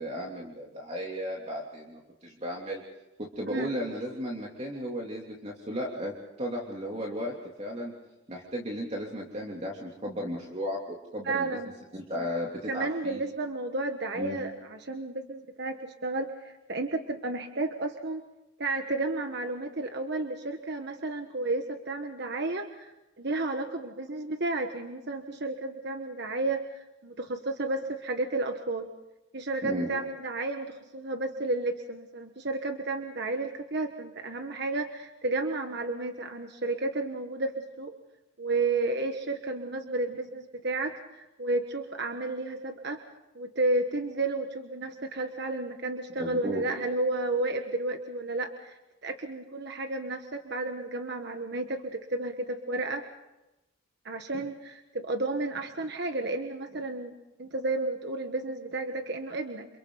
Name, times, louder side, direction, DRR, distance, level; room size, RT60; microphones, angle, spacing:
voice 1, 0.0-2.8 3.2-6.1 6.4-7.9 8.3-11.6 11.9-13.2 14.1-14.4 29.6-29.9 46.2-46.6, equal, 30° right, -2 dB, 3.0 m, -35 dB
voice 2, 11.2-11.7 12.7-18.2 18.6-28.9 29.3-37.9 38.4-43.0 43.3-53.0 54.0-57.1 57.4-59.7, right 2 dB, 55° right, 5 dB, 1.4 m, -32 dB
29.5 x 28.0 x 4.0 m, 0.99 s
head